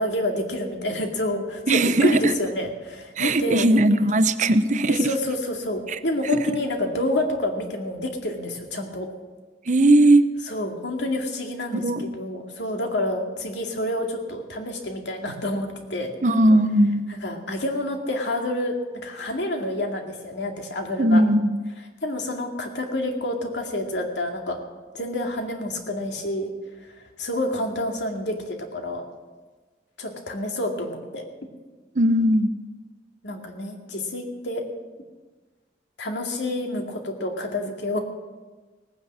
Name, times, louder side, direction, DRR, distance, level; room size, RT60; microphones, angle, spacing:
voice 1, 0.0-3.7 4.9-9.1 10.4-16.1 17.1-18.8 19.0-21.2 22.0-24.6 24.9-26.5 27.2-29.0 30.0-31.3 33.2-34.6 36.0-38.0, left 1 dB, 85° left, 3 dB, 2.3 m, -28 dB
voice 2, 1.7-2.3 3.2-5.1 5.9-6.0 6.3-6.4 9.7-10.2 11.7-12.0 16.2-17.1 21.0-21.6 31.9-32.5, right 1 dB, 45° right, 12 dB, 0.7 m, -18 dB
18.0 x 9.7 x 7.3 m, 1.3 s
head